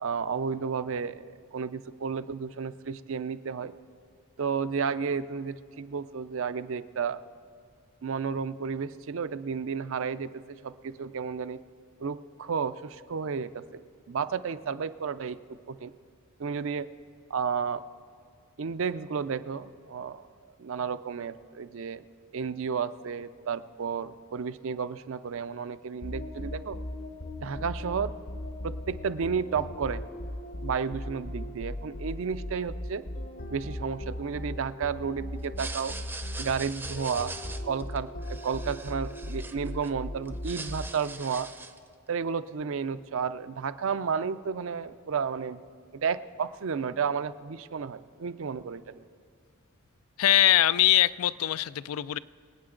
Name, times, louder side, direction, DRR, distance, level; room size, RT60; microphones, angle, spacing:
voice 1, 0.0-3.7 4.4-7.2 8.0-10.3 10.6-11.6 12.0-13.8 14.1-15.4 15.7-15.9 16.4-16.9 17.3-17.8 18.6-20.3 20.6-22.0 22.3-26.8 27.4-28.1 28.6-30.0 30.6-33.0 33.5-35.9 36.4-37.3 37.7-41.5 42.1-45.6 46.0-48.8, right 6 dB, 65° right, 0.5 m, -32 dB
sound 1, 26.0-41.2, left 1 dB, 40° left, 0.8 m, -38 dB
sound 2, 35.4-39.9 40.2-41.9, right 3 dB, 10° right, 0.6 m, -42 dB
voice 2, 50.2-52.2, left 13 dB, 75° left, 0.3 m, -22 dB
25.5 x 8.7 x 3.8 m
head